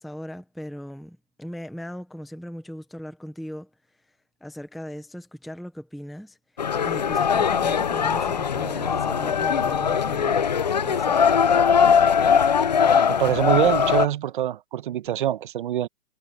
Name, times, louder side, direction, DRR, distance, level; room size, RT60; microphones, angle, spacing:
voice 1, 0.0-3.7 4.4-6.4 6.8-10.5 10.7-11.4, equal, ahead, 0.9 m, -38 dB
sound 1, 6.6-14.1, left 7 dB, 30° left, 0.5 m, -21 dB
voice 2, 13.1-15.9, right 11 dB, 30° right, 1.1 m, -24 dB
hypercardioid pair, 150°, 48 cm